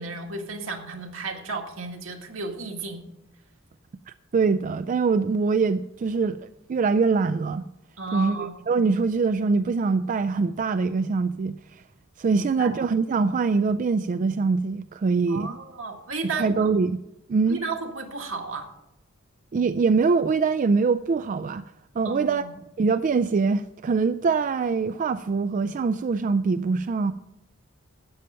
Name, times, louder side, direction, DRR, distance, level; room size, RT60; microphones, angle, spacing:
voice 1, 0.0-3.0 8.0-8.5 12.3-12.8 15.3-16.7 17.5-18.7 22.0-22.5, right 3 dB, 70° right, 1.8 m, -33 dB
voice 2, 4.1-7.6 8.1-11.8 12.2-15.6 16.3-17.0 17.3-17.6 19.5-21.6 22.0-22.5 22.8-27.1, right 4 dB, 40° right, 0.3 m, -23 dB
12.5 x 8.9 x 5.6 m
head